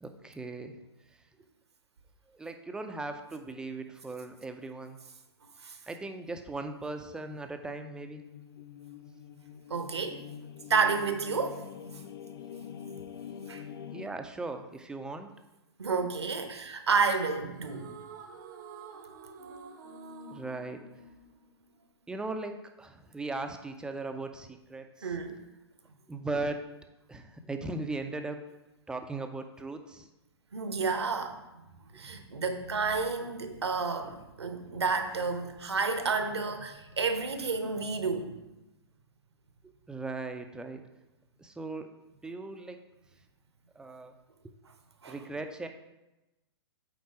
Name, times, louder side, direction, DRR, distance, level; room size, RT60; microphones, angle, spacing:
voice 1, 0.0-0.8 2.3-5.0 5.9-8.2 13.9-15.3 20.3-20.8 22.1-25.1 26.1-26.6 27.1-28.4 28.9-30.1 39.9-40.8 41.4-41.9 42.2-42.8 43.8-44.1 45.1-45.7, right 3 dB, 5° right, 6 dB, 0.4 m, -38 dB
sound 1, 7.5-14.1, left 8 dB, 55° left, 0.5 m, -45 dB
voice 2, 9.7-10.2 10.7-11.7 13.5-13.7 15.8-17.9 25.0-25.4 30.5-31.4 31.9-38.4 45.0-45.2, right 4 dB, 70° right, 7 dB, 0.9 m, -30 dB
sound 2, 17.5-22.0, right 4 dB, 45° right, 0.7 m, -48 dB
8.4 x 3.9 x 4.8 m, 0.98 s
figure-of-eight pair, 110°, 14 cm